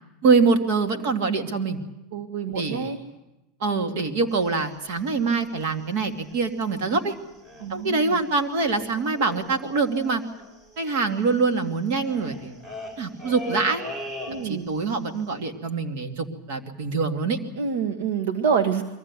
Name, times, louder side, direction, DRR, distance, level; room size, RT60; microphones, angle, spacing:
voice 1, 0.2-1.8 2.5-2.9 3.6-7.2 7.7-10.2 10.8-12.6 13.0-13.8 14.3-17.4, right 4 dB, 65° right, 5 dB, 2.5 m, -24 dB
voice 2, 2.1-3.0 7.6-8.2 14.3-14.7 17.6-18.8, right 7 dB, 85° right, 8 dB, 1.4 m, -26 dB
sound 1, 4.3-6.6 6.9-7.1 7.4-7.9 8.2-8.3 8.4-14.8 15.1-15.3, equal, 30° right, 7.8 m, -40 dB
23.0 x 15.0 x 9.7 m, 0.93 s
supercardioid pair, 130°, 0 cm